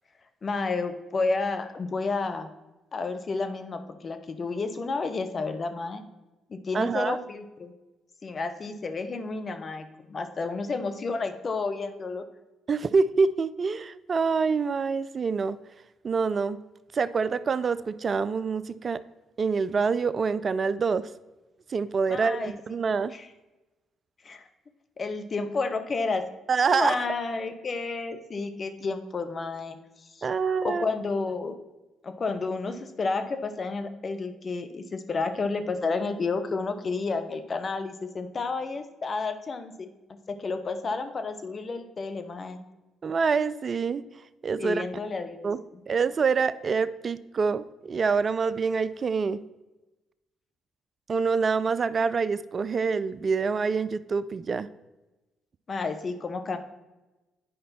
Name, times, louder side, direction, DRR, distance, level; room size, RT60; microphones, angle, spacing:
voice 1, 0.4-2.5 2.9-6.0 6.5-7.7 8.2-12.2 22.1-22.6 23.1-23.3 24.2-24.4 25.0-26.2 26.7-29.8 30.1-31.6 32.0-39.9 40.3-42.6 44.6-45.8 55.7-56.6, left 3 dB, 45° left, 8 dB, 1.0 m, -31 dB
voice 2, 6.7-7.2 12.7-15.6 16.0-16.6 16.9-19.0 19.4-21.1 21.7-23.1 26.5-27.0 30.2-30.9 43.0-44.0 44.4-44.8 45.4-45.6 45.9-49.4 51.1-54.7, right 5 dB, 45° right, 16 dB, 0.4 m, -26 dB
9.3 x 5.1 x 4.3 m, 1.1 s
hypercardioid pair, 55°, 0 cm